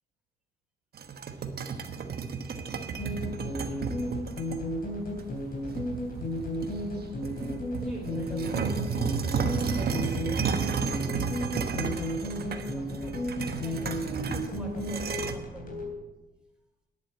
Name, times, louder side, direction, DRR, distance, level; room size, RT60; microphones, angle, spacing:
sound 1, 0.9-4.6 5.2-5.3 5.8-6.9 7.2-15.3, right 6 dB, 50° right, 1.2 m, -32 dB
sound 2, 3.0-15.9, left 1 dB, 45° left, 3.4 m, -33 dB
voice 1, 7.8-13.2 13.6-15.8, right 2 dB, 5° right, 0 dB, 4.3 m, -45 dB
10.5 x 8.7 x 7.6 m, 1.1 s
cardioid pair, 90°, 20 cm